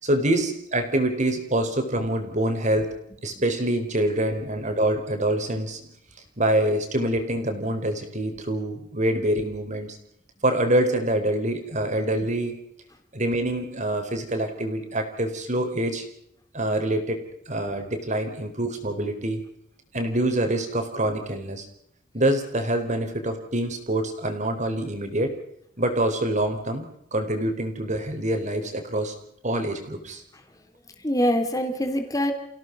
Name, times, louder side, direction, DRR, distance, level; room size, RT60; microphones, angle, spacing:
voice 1, 0.0-2.9 3.2-5.8 6.4-10.0 10.4-12.6 13.1-16.0 16.5-19.4 19.9-21.7 22.1-25.3 25.8-29.1 29.4-30.2, right 1 dB, 40° right, 6 dB, 4.4 m, -25 dB
voice 2, 30.3-30.7 31.0-32.3, equal, 20° left, 7 dB, 3.2 m, -25 dB
30.0 x 17.0 x 5.4 m, 0.73 s
head